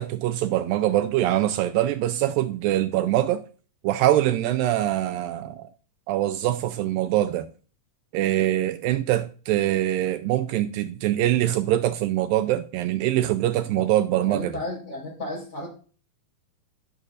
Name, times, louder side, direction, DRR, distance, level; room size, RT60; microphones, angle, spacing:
voice 1, 0.0-3.4 3.8-5.7 6.1-7.5 8.1-14.5, right 13 dB, 80° right, 2.1 m, -23 dB
voice 2, 14.3-15.7, left 1 dB, 20° left, 4.7 m, -33 dB
13.0 x 6.3 x 2.4 m
omnidirectional pair, 4.3 m